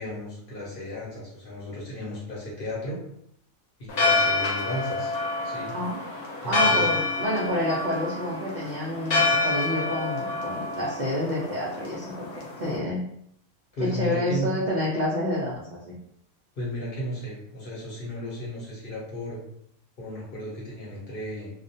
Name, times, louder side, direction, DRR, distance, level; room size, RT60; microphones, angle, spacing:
voice 1, 0.0-3.0 3.8-5.1 5.4-5.7 6.4-6.9 13.7-14.5 16.6-19.4 20.0-21.5, equal, 50° left, -6 dB, 0.8 m, -34 dB
Church bell, 3.9-12.8, left 3 dB, 85° left, 0.3 m, -27 dB
voice 2, 6.4-12.3 12.6-13.0 13.8-16.0, left 1 dB, 70° right, -5 dB, 0.4 m, -28 dB
2.4 x 2.1 x 2.6 m, 0.69 s
omnidirectional pair, 1.4 m